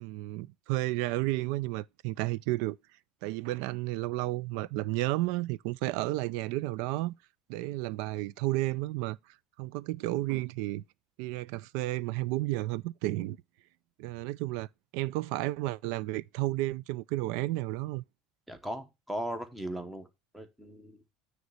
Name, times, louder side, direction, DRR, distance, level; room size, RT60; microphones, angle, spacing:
voice 1, 0.0-2.8 3.2-7.1 7.5-9.2 9.6-10.8 11.2-13.4 14.0-14.7 14.9-18.0, right 18 dB, 70° right, 0.4 m, -32 dB
voice 2, 18.5-20.1 20.3-21.0, right 1 dB, 5° right, 1.0 m, -38 dB
9.4 x 3.2 x 6.3 m
cardioid pair, 160°, 0 cm